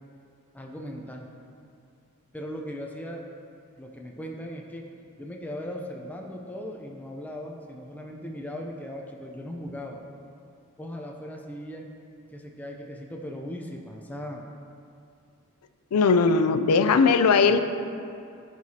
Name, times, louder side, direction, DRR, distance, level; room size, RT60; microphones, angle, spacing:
voice 1, 0.5-1.3 2.3-3.2 3.8-4.9 5.2-10.0 10.8-11.9 12.3-14.4, equal, 5° left, 0 dB, 0.5 m, -38 dB
voice 2, 15.9-17.6, left 5 dB, 85° left, 10 dB, 0.4 m, -19 dB
13.5 x 4.7 x 2.8 m, 2.5 s
head